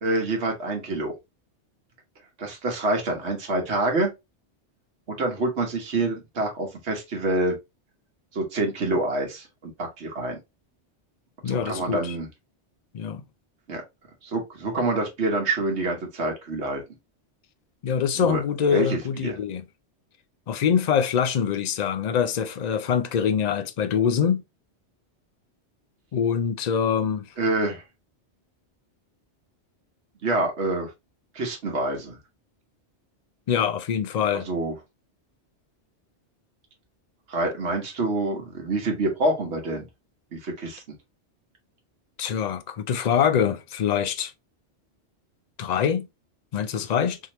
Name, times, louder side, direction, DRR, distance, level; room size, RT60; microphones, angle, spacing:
voice 1, 0.0-1.1 2.4-4.1 5.1-7.6 8.3-10.4 11.5-12.3 13.7-13.8 14.2-16.8 18.1-18.4 18.7-19.3 27.4-27.8 30.2-30.9 31.3-32.2 34.3-34.7 37.3-39.9 40.3-40.8, right 2 dB, 70° right, 1.4 m, -26 dB
voice 2, 11.4-12.1 12.9-13.2 17.8-19.6 20.5-24.4 26.1-27.3 33.5-34.5 42.2-44.3 45.6-46.1 46.5-47.2, left 7 dB, 60° left, 0.4 m, -24 dB
3.6 x 2.9 x 2.9 m
omnidirectional pair, 1.2 m